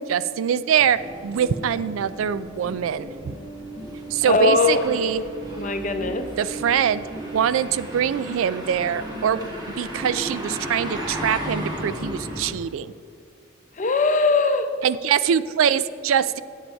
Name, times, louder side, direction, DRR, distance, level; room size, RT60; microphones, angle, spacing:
voice 1, 0.1-1.0 1.2-3.1 4.1-5.2 6.4-7.0 7.3-9.4 9.8-12.9 14.8-16.4, right 8 dB, 85° right, 16 dB, 0.3 m, -23 dB
sound 1, 0.7-12.5, right 1 dB, 20° right, 1.5 m, -34 dB
voice 2, 4.3-4.8 5.6-6.3 13.8-14.7, left 3 dB, 40° left, 7 dB, 0.7 m, -20 dB
9.0 x 7.6 x 4.6 m, 2.4 s
head